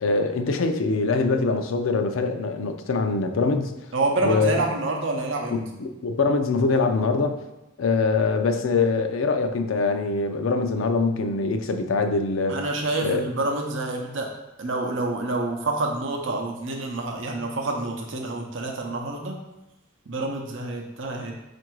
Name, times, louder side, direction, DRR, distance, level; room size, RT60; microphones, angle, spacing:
voice 1, 0.0-3.7 4.2-4.7 5.5-7.4 7.8-12.6 13.0-13.2, left 3 dB, 85° left, 6 dB, 0.5 m, -23 dB
voice 2, 3.9-5.6 12.5-14.3 14.6-19.4 20.1-21.3, right 2 dB, 65° right, 1 dB, 0.6 m, -27 dB
4.6 x 2.6 x 4.5 m, 0.99 s
head